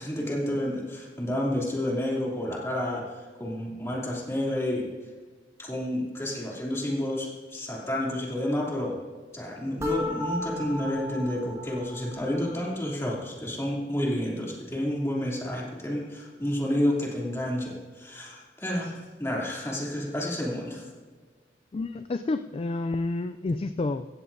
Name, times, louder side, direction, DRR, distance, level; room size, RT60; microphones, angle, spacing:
voice 1, 0.0-3.0 3.4-4.9 5.6-9.0 9.3-20.8, left 1 dB, 15° left, -4 dB, 2.9 m, -30 dB
sound 1, 9.8-12.7, left 2 dB, 15° right, 1.5 m, -34 dB
voice 2, 21.7-24.1, left 2 dB, 30° left, 11 dB, 0.3 m, -29 dB
16.0 x 16.0 x 2.7 m, 1.5 s
head